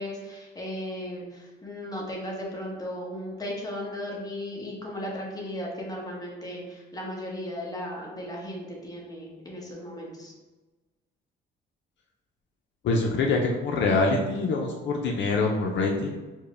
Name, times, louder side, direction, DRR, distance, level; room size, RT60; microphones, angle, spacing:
voice 1, 0.0-10.3, left 1 dB, 20° left, -3 dB, 1.1 m, -36 dB
voice 2, 12.8-16.2, left 3 dB, 70° left, 0 dB, 0.5 m, -25 dB
4.5 x 2.2 x 3.3 m, 1.2 s
cardioid pair, 90°, 20 cm